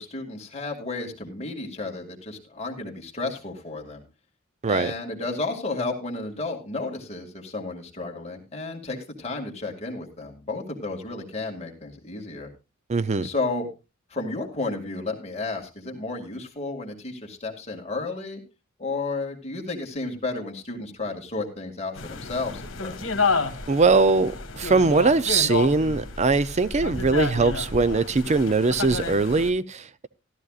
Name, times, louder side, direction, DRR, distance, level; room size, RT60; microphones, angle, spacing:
voice 1, 0.0-4.0 4.6-12.5 13.2-13.7 14.1-18.4 18.8-23.1, left 3 dB, 30° left, 2.2 m, -32 dB
voice 2, 4.6-4.9 12.9-13.3 23.7-30.1, right 3 dB, 35° right, 0.5 m, -21 dB
sound 1, 22.0-29.5, left 4 dB, 75° left, 1.6 m, -30 dB
15.0 x 12.5 x 2.4 m
head